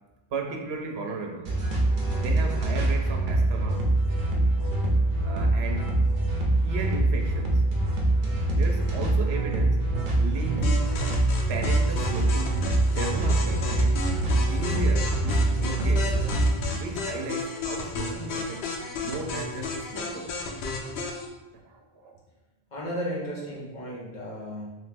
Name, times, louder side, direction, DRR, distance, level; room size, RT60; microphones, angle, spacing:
voice 1, 0.3-1.5 2.2-3.9 5.2-6.0 6.6-7.6 8.5-9.8 10.1-10.9 11.5-14.1 14.4-16.2 16.7-18.7 19.0-20.3 21.5-22.2, right 4 dB, 85° right, 2 dB, 0.8 m, -35 dB
sound 1, 1.4-16.5, right 2 dB, 55° right, 0.8 m, -24 dB
sound 2, 10.6-21.3, left 3 dB, 85° left, 0.8 m, -33 dB
voice 2, 22.7-24.8, equal, 50° left, -4 dB, 1.0 m, -34 dB
3.0 x 2.9 x 3.3 m, 1.1 s
omnidirectional pair, 1.0 m